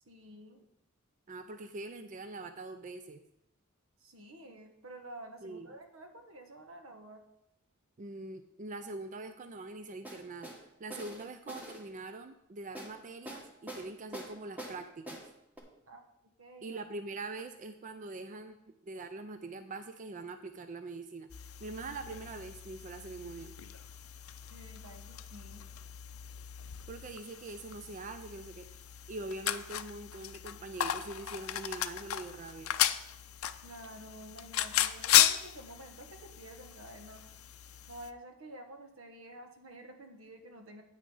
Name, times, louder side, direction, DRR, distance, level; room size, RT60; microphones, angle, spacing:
voice 1, 0.0-0.7 4.0-7.2 15.9-16.0 16.4-16.8 24.5-25.7 33.6-37.2 37.9-40.8, right 1 dB, 80° right, 5 dB, 1.3 m, -50 dB
voice 2, 1.3-3.2 5.4-5.7 8.0-10.5 10.8-15.2 16.6-18.6 18.8-23.5 26.9-28.7 29.1-32.7, right 2 dB, 40° right, 9 dB, 0.5 m, -43 dB
sound 1, 10.0-10.6 10.9-11.8 12.7-12.9 13.3-13.9 14.1-14.8 15.1-15.2 15.6-15.7, right 1 dB, 10° right, 1.5 m, -44 dB
sound 2, 21.3-38.1, left 12 dB, 90° left, 0.5 m, -35 dB
9.0 x 6.3 x 5.4 m, 0.88 s
head